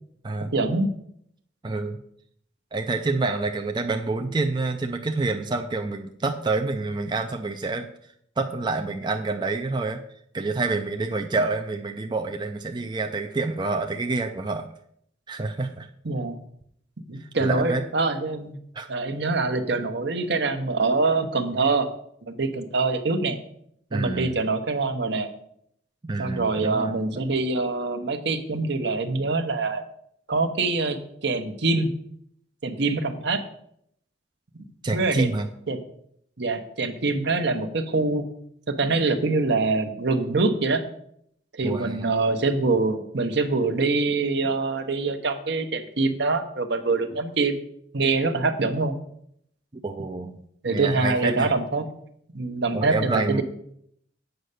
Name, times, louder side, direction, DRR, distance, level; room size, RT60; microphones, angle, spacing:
voice 1, 0.5-0.9 16.0-16.4 17.1-18.6 18.9-21.9 22.2-23.4 23.9-25.3 26.2-29.8 30.3-31.9 32.6-33.4 34.9-35.3 35.7-35.8 36.4-38.2 38.7-40.8 41.5-47.6 47.9-48.9 50.6-51.9 52.3-53.4, right 3 dB, 65° right, 7 dB, 0.9 m, -24 dB
voice 2, 1.6-2.0 2.7-7.9 8.4-10.0 10.3-14.7 15.3-15.9 17.2-17.8 18.7-18.9 23.9-24.3 26.0-26.9 34.8-35.5 41.6-42.1 49.8-50.4 50.7-51.5 52.7-53.4, right 3 dB, 25° right, 5 dB, 0.5 m, -27 dB
8.0 x 5.5 x 6.6 m, 0.70 s
head